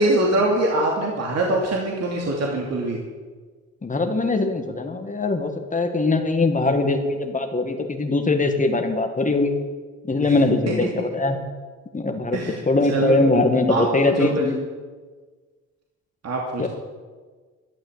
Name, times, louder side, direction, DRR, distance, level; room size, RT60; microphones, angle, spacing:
voice 1, 0.0-3.0 10.2-10.3 12.3-12.6 12.9-13.2 13.7-14.4 16.2-16.6, right 1 dB, 55° right, -1 dB, 2.8 m, -23 dB
voice 2, 3.8-9.5 10.1-11.4 11.9-12.4 12.6-14.6 16.6-16.7, left 2 dB, 25° left, 5 dB, 1.9 m, -21 dB
12.0 x 11.5 x 8.2 m, 1.4 s
cardioid pair, 90°, 30 cm